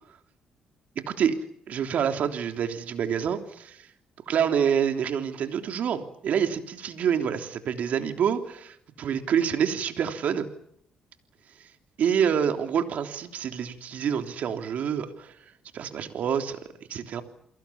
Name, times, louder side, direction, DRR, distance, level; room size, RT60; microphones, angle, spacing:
voice 1, 0.9-1.3 1.7-3.8 4.3-10.5 12.0-15.3 15.7-16.6 16.9-17.2, right 8 dB, 65° right, 6 dB, 3.2 m, -27 dB
30.0 x 22.5 x 7.3 m, 0.71 s
supercardioid pair, 60°, 3 cm